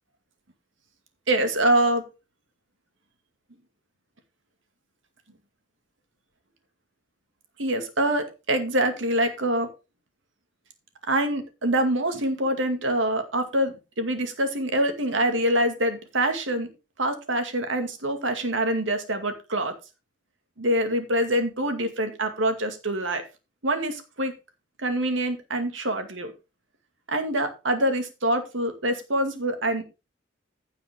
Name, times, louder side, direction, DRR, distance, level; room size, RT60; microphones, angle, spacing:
voice 1, 1.3-2.0 7.6-9.7 11.1-16.7 17.0-19.7 20.6-23.2 23.6-24.3 24.8-26.3 27.1-29.8, right 1 dB, 85° right, 7 dB, 2.3 m, -25 dB
15.0 x 5.7 x 3.6 m, 0.29 s
head